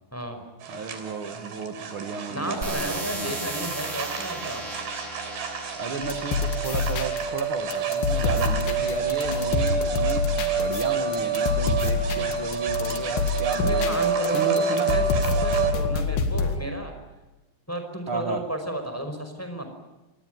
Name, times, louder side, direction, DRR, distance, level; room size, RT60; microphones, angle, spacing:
voice 1, 0.1-0.4 2.3-4.7 13.6-16.9 17.7-19.7, right 1 dB, 5° left, 5 dB, 4.7 m, -32 dB
sound 1, 0.6-15.7, right 5 dB, 80° right, 5.3 m, -28 dB
voice 2, 0.7-3.4 5.8-14.1 14.3-14.9 18.1-18.4, right 4 dB, 50° right, 7 dB, 1.6 m, -33 dB
sound 2, 2.6-7.4 8.1-8.6, right 1 dB, 15° right, 4.8 m, -37 dB
sound 3, 6.0-7.4 7.7-16.6, left 4 dB, 70° left, 3.9 m, -27 dB
27.0 x 20.5 x 9.6 m, 1.1 s
omnidirectional pair, 4.8 m